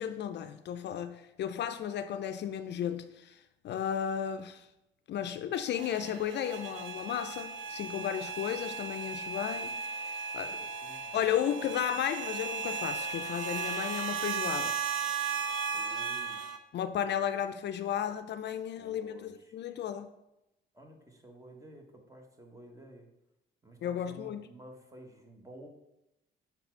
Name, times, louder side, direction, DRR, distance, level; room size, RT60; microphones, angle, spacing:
voice 1, 0.0-3.4 3.6-4.7 5.1-9.8 10.3-10.7 11.1-14.8 16.7-20.1 23.8-24.5, left 9 dB, 60° left, 0.4 m, -34 dB
sound 1, 5.7-16.6, right 5 dB, 85° right, 0.6 m, -36 dB
voice 2, 10.4-11.3 15.7-16.4 17.7-17.9 18.8-19.5 20.7-23.1 23.6-25.7, right 1 dB, 15° right, 1.1 m, -52 dB
5.7 x 4.1 x 4.5 m
cardioid pair, 90°, 20 cm